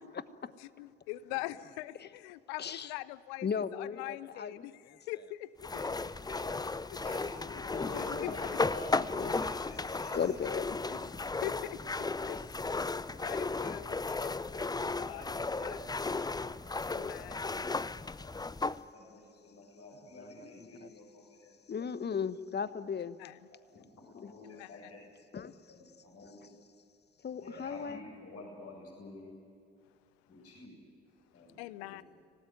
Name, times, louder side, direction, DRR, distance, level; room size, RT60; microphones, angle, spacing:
voice 1, 0.0-0.5 2.6-2.9 3.4-4.7 7.5-8.3 9.2-9.3 10.1-11.4 20.2-20.3 20.8-20.9 21.7-23.2 24.1-24.6 25.3-25.5 27.2-28.0, left 6 dB, 30° left, 15 dB, 1.1 m, -37 dB
voice 2, 0.6-5.7 6.9-7.0 7.9-8.6 10.9-12.9 13.2-15.8 16.9-17.4 23.0-23.4 24.4-24.9 31.6-32.0, left 17 dB, 70° left, 19 dB, 0.7 m, -43 dB
sound 1, 5.6-18.8, left 3 dB, 10° left, 0.6 m, -35 dB
voice 3, 7.0-10.2 13.1-13.6 14.8-16.3 16.6-17.6 18.2-18.3 18.9-21.5 22.5-22.8 23.7-23.8 24.1-25.0 25.7-26.5 27.4-29.3 30.3-30.8 31.3-32.0, left 2 dB, 50° left, 0 dB, 7.4 m, -49 dB
25.5 x 18.0 x 9.6 m, 2.4 s
hypercardioid pair, 55°, 32 cm